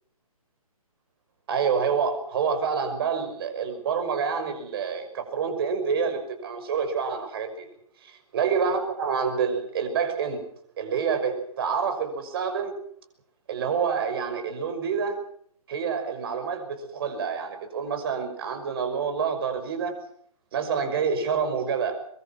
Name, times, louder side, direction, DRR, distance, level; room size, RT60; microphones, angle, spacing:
voice 1, 1.5-7.7 8.3-10.4 10.8-12.8 13.5-15.2 15.7-19.9 20.5-22.0, right 6 dB, 40° right, 6 dB, 5.9 m, -27 dB
23.5 x 23.5 x 6.1 m, 0.63 s
figure-of-eight pair, 135°, 19 cm